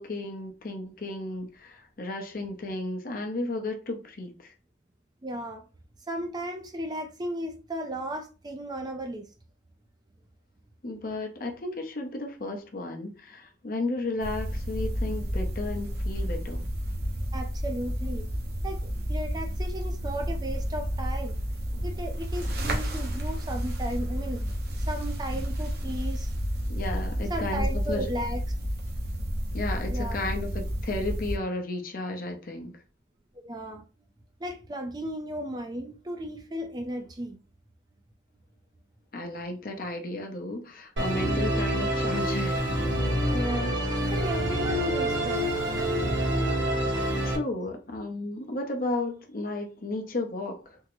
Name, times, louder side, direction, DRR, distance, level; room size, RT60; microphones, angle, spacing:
voice 1, 0.0-4.5 10.8-16.6 26.6-28.1 29.5-32.8 39.1-42.6 47.2-50.8, left 2 dB, 50° left, 0.7 m, -33 dB
voice 2, 5.2-5.6 6.1-9.3 17.3-18.3 18.6-21.4 21.8-24.4 24.9-26.3 27.3-28.4 29.9-30.2 33.4-33.8 34.4-37.4 43.3-43.7 44.1-45.5, right 1 dB, 20° right, 0.4 m, -35 dB
sound 1, 14.2-31.4, equal, 60° right, 0.7 m, -31 dB
Musical instrument, 41.0-47.4, right 1 dB, 85° right, 1.2 m, -27 dB
3.5 x 2.0 x 3.0 m
head